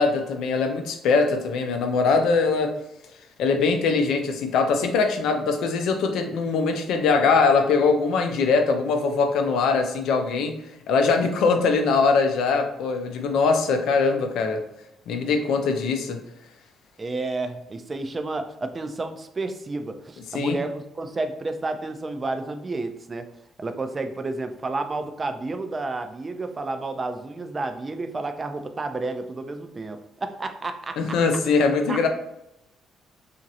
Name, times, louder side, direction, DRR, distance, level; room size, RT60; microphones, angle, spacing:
voice 1, 0.0-2.7 3.4-10.6 10.9-14.6 15.1-16.2 20.3-20.6 31.0-32.1, left 4 dB, 75° left, 5 dB, 0.4 m, -22 dB
voice 2, 17.0-23.3 23.6-31.4 31.9-32.0, right 3 dB, 35° right, 8 dB, 0.4 m, -31 dB
2.9 x 2.4 x 2.7 m, 0.84 s
supercardioid pair, 60°, 0 cm